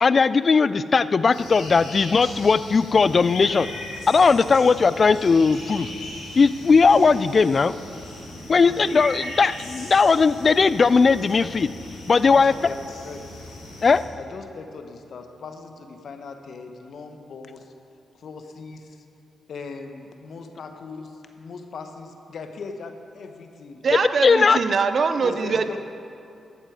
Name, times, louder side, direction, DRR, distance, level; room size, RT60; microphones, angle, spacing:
voice 1, 0.0-3.7 4.1-5.9 6.4-7.7 8.5-11.7 12.1-12.5 13.8-14.0 24.2-24.6, left 4 dB, 50° left, 16 dB, 0.3 m, -18 dB
sound 1, 1.3-14.0, left 1 dB, 90° left, 2.4 m, -38 dB
voice 2, 8.6-9.0 12.2-12.8 13.0-13.4 14.2-17.7 18.1-19.0 19.5-24.0 25.2-25.8, left 4 dB, 65° left, 6 dB, 0.9 m, -39 dB
voice 3, 23.8-25.8, right 5 dB, 55° right, 10 dB, 0.6 m, -23 dB
12.5 x 7.3 x 5.0 m, 2.6 s
supercardioid pair, 50°, 0 cm